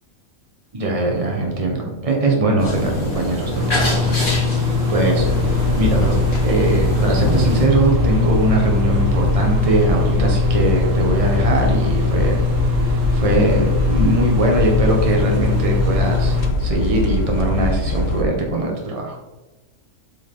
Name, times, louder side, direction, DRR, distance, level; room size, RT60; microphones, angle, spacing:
voice 1, 0.7-6.2 6.4-12.4 13.1-19.2, right 2 dB, 25° right, 0 dB, 1.5 m, -21 dB
sound 1, 2.6-7.7, left 1 dB, 75° left, 2.7 m, -25 dB
sound 2, 3.6-16.5, left 3 dB, 65° right, 1.4 m, -22 dB
sound 3, 5.2-18.2, left 2 dB, 55° left, 1.0 m, -22 dB
7.8 x 5.0 x 4.0 m, 1.1 s
omnidirectional pair, 1.5 m